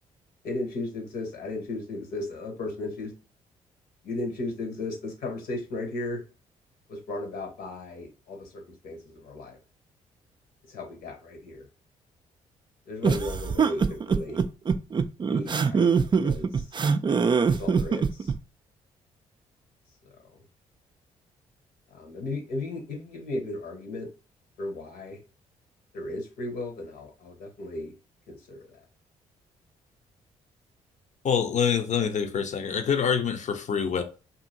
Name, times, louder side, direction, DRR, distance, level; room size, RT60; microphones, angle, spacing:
voice 1, 0.4-3.1 4.0-6.2 6.9-9.6 10.7-11.7 12.9-14.4 15.3-15.9 16.2-16.7 17.6-18.3 21.9-24.1 24.6-25.2 25.9-27.9 28.3-28.7, left 2 dB, 70° left, 1.1 m, -35 dB
sound 1, 13.0-18.4, right 5 dB, 30° right, 0.4 m, -23 dB
voice 2, 31.2-34.0, left 7 dB, 45° left, 0.6 m, -25 dB
2.7 x 2.7 x 2.6 m
hypercardioid pair, 45°, 17 cm